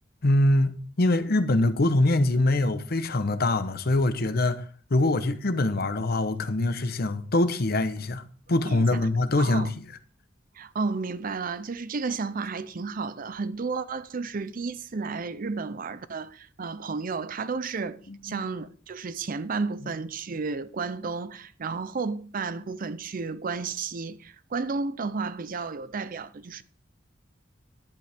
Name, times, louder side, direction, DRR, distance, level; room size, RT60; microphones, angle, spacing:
voice 1, 0.2-4.6 4.9-8.2 8.5-9.8 18.1-18.4, left 2 dB, 55° left, 0.8 m, -24 dB
voice 2, 8.6-9.0 9.4-9.7 10.5-26.6, right 4 dB, 45° right, 0.5 m, -32 dB
10.5 x 8.3 x 3.5 m
head